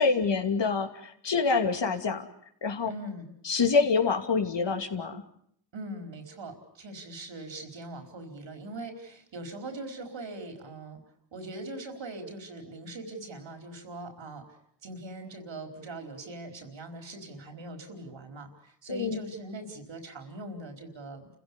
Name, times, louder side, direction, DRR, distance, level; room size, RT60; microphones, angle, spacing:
voice 1, 0.0-2.2 2.6-2.9 3.4-5.2 18.9-19.2, left 4 dB, 70° left, 5 dB, 2.8 m, -26 dB
voice 2, 2.9-3.3 5.7-11.0 11.3-14.4 14.8-21.3, right 2 dB, 85° right, 5 dB, 4.7 m, -41 dB
30.0 x 16.0 x 9.9 m, 0.70 s
cardioid pair, 70°, 44 cm